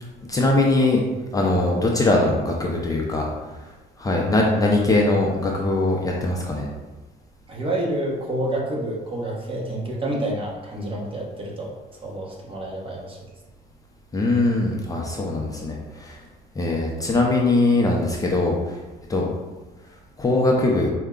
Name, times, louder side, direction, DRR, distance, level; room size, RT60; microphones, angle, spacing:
voice 1, 0.3-1.0 1.3-3.3 4.0-6.7 14.1-16.2 16.6-18.6 19.1-19.3 20.2-20.9, left 2 dB, 20° left, -1 dB, 0.5 m, -21 dB
voice 2, 7.5-11.7 12.0-13.2, right 1 dB, 30° right, -3 dB, 1.1 m, -28 dB
4.5 x 2.2 x 3.7 m, 1.2 s
cardioid pair, 110°, 17 cm